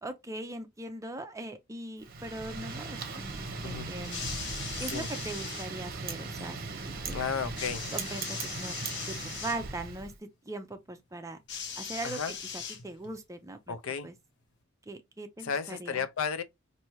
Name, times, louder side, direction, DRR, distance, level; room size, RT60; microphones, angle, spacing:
voice 1, 0.0-4.3 4.8-7.2 7.9-8.8 9.1-11.4 11.8-13.8 14.0-14.1 14.9-16.1, right 2 dB, 15° right, 0.5 m, -40 dB
Wind, 2.0-10.2, right 4 dB, 45° right, 0.8 m, -39 dB
sound 1, 4.0-5.7 7.6-9.6 11.5-13.2 14.1-14.2, left 7 dB, 55° left, 0.9 m, -40 dB
voice 2, 7.1-7.9 12.0-12.4 13.7-14.1 15.4-16.4, left 6 dB, 80° left, 0.5 m, -33 dB
4.4 x 2.7 x 2.9 m
head